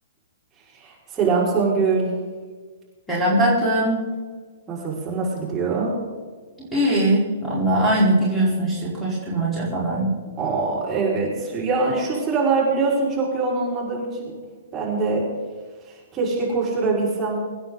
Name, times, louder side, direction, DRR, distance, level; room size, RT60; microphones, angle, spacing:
voice 1, 0.7-2.1 4.7-6.0 10.4-14.3 14.7-15.2 15.9-17.4, right 4 dB, 20° right, -6 dB, 5.5 m, -23 dB
voice 2, 3.1-4.0 6.6-10.1, right 1 dB, 5° left, -7 dB, 4.8 m, -21 dB
25.0 x 9.4 x 4.1 m, 1.5 s
figure-of-eight pair, 115°, 0 cm